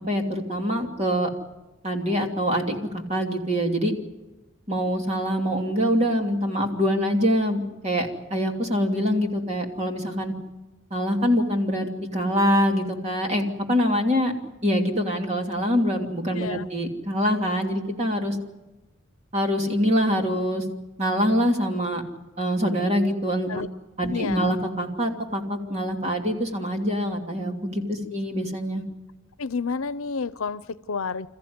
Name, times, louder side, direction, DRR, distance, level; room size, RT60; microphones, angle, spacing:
voice 1, 0.1-1.3 1.8-3.9 4.7-10.3 10.9-14.3 14.6-18.4 19.3-20.6 21.0-22.0 22.4-23.5 24.0-28.8, equal, 30° right, 2 dB, 2.9 m, -24 dB
voice 2, 16.3-16.7 23.5-23.7 24.1-24.5 28.1-28.2 29.4-31.3, left 5 dB, 90° left, 16 dB, 0.8 m, -30 dB
28.0 x 14.5 x 9.6 m, 1.1 s
head